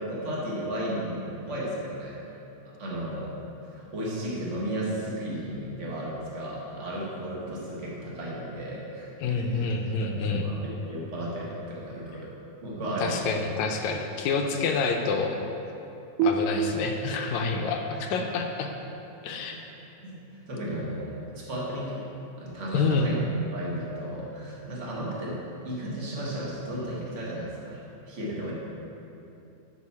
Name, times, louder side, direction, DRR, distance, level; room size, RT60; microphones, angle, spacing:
voice 1, 0.0-2.4 2.8-3.3 3.6-9.7 10.1-12.3 12.6-13.2 19.4-19.6 20.0-21.2 21.5-22.0 22.4-23.2 23.5-25.4 25.6-28.5, right 1 dB, 30° right, -5 dB, 1.4 m, -34 dB
voice 2, 9.2-10.5 13.0-15.4 16.2-18.7 19.2-19.6 22.7-23.2, left 4 dB, 75° left, 3 dB, 1.8 m, -27 dB
sound 1, 16.2-19.6, right 4 dB, 90° right, 2.1 m, -31 dB
9.6 x 6.9 x 4.2 m, 2.8 s
omnidirectional pair, 3.5 m